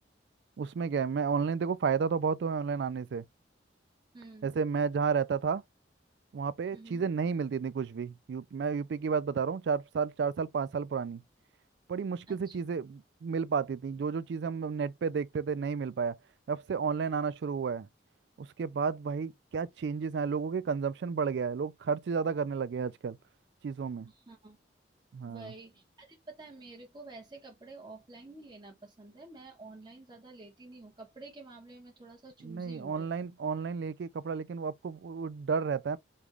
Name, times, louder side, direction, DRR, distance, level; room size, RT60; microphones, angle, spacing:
voice 1, 0.6-3.2 4.4-5.6 6.3-11.2 11.9-16.2 16.5-17.9 18.4-23.2 23.6-24.1 25.1-25.5 32.4-36.0, right 5 dB, 70° right, 0.3 m, -32 dB
voice 2, 4.1-4.5 6.7-7.1 12.3-12.6 24.1-24.6 25.2-33.1, right 3 dB, 25° right, 1.3 m, -49 dB
5.3 x 2.4 x 3.1 m
head